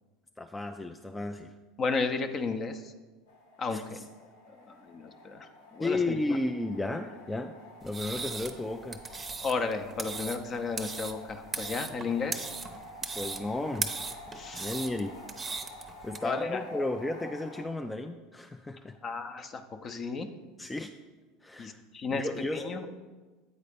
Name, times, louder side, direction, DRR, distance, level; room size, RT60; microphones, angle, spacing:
voice 1, 0.4-1.5 3.7-4.0 5.8-9.0 13.1-13.9 14.5-15.2 16.0-19.0 20.6-20.9 21.4-21.8 22.1-22.6, left 2 dB, 10° left, 5 dB, 0.4 m, -33 dB
voice 2, 1.8-2.9 3.6-4.0 4.5-6.2 9.4-12.5 14.3-14.7 16.2-16.9 19.0-20.3 21.6-22.2 22.5-22.9, left 4 dB, 35° left, 7 dB, 0.7 m, -33 dB
sound 1, 3.3-17.6, left 1 dB, 85° left, 1.3 m, -49 dB
sound 2, 7.8-16.2, right 4 dB, 25° right, 0.7 m, -38 dB
8.5 x 4.1 x 5.1 m, 1.3 s
hypercardioid pair, 90°, 0 cm